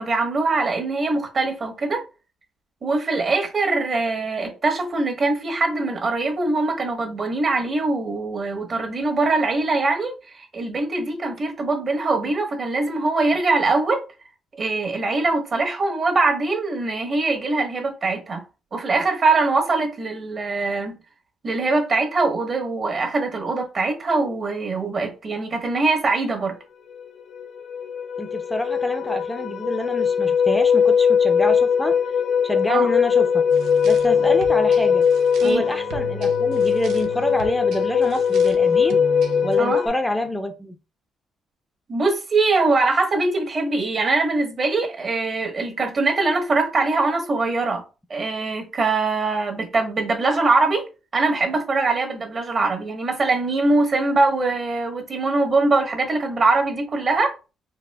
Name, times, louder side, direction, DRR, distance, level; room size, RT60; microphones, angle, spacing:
voice 1, 0.0-2.0 2.8-10.1 10.5-14.0 14.6-18.4 18.7-21.0 21.4-26.6 32.7-32.9 35.4-35.6 39.6-39.8 41.9-47.8 48.1-50.8 51.1-57.3, right 3 dB, 45° right, 1.1 m, -22 dB
sound 1, 27.0-27.1 27.4-39.9, left 7 dB, 80° left, 0.7 m, -20 dB
voice 2, 28.2-31.9 32.4-33.4 33.8-35.1 35.4-39.0 39.4-40.8, left 1 dB, 10° left, 0.5 m, -27 dB
sound 2, 33.5-39.6, right 3 dB, 85° right, 0.6 m, -37 dB
4.1 x 2.7 x 2.2 m
cardioid pair, 90°, 0 cm